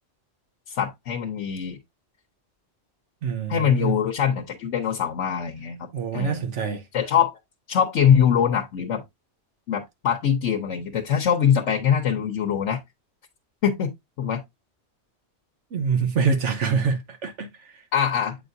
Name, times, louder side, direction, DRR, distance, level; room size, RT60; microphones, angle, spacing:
voice 1, 0.7-1.8 3.5-6.5 6.9-7.3 7.7-9.0 9.7-12.8 13.6-13.9 14.2-14.4 17.9-18.4, left 8 dB, 90° left, 1.1 m, -23 dB
voice 2, 3.2-4.0 5.9-6.8 15.7-17.8, right 5 dB, 80° right, 1.2 m, -25 dB
7.9 x 5.0 x 2.6 m
omnidirectional pair, 1.2 m